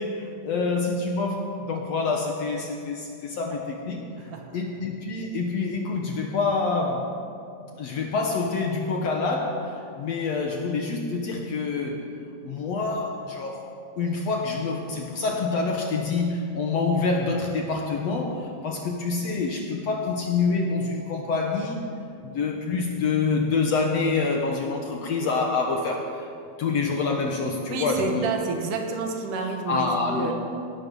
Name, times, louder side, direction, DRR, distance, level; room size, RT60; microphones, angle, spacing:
voice 1, 0.0-4.1 4.5-7.1 7.7-12.0 12.4-13.7 14.0-21.9 22.2-26.3 26.6-28.3 29.7-30.3, left 4 dB, 60° left, 2 dB, 1.9 m, -26 dB
voice 2, 27.7-30.3, right 4 dB, 70° right, 3 dB, 2.9 m, -29 dB
17.5 x 13.0 x 5.4 m, 2.5 s
omnidirectional pair, 4.0 m